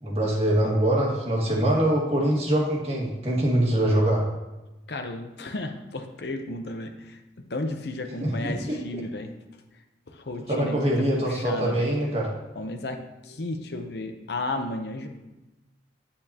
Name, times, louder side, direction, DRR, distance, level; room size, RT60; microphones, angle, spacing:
voice 1, 0.0-4.2 8.2-8.8 10.5-12.3, right 1 dB, 35° right, -2 dB, 1.7 m, -23 dB
voice 2, 4.9-7.2 7.5-9.3 10.1-11.9 12.5-15.1, left 2 dB, 65° left, 5 dB, 0.8 m, -33 dB
8.7 x 8.6 x 2.9 m, 1.0 s
head